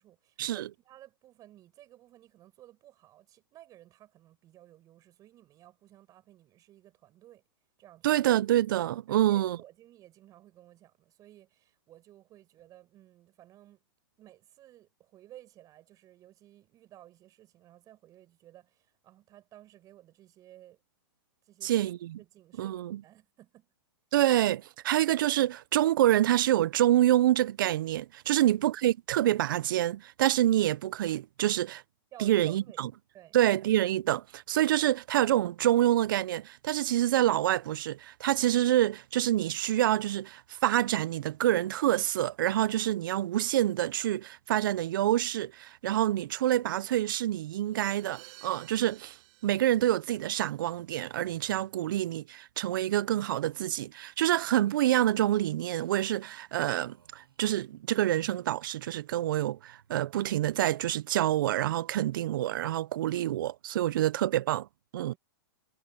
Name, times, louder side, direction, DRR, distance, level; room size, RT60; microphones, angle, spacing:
voice 1, 0.0-7.4 7.8-8.3 9.1-13.8 14.2-20.8 21.4-21.9 22.2-23.7 28.2-28.5 32.1-32.8 33.1-33.4 65.0-65.2, right 13 dB, 30° right, 7.1 m, -55 dB
voice 2, 8.0-9.6 21.6-22.2 22.6-23.0 24.1-31.8 32.2-32.9 33.3-49.2 49.4-64.7 64.9-65.1, right 13 dB, 65° right, 0.6 m, -27 dB
Crash cymbal, 47.7-50.6, right 33 dB, 45° right, 7.5 m, -54 dB
sound 1, 53.3-53.8 54.5-54.9 55.6-55.9 56.8-57.4 58.1-58.8 59.4-60.1 60.5-60.9, right 8 dB, 85° right, 7.6 m, -65 dB
hypercardioid pair, 125°, 12 cm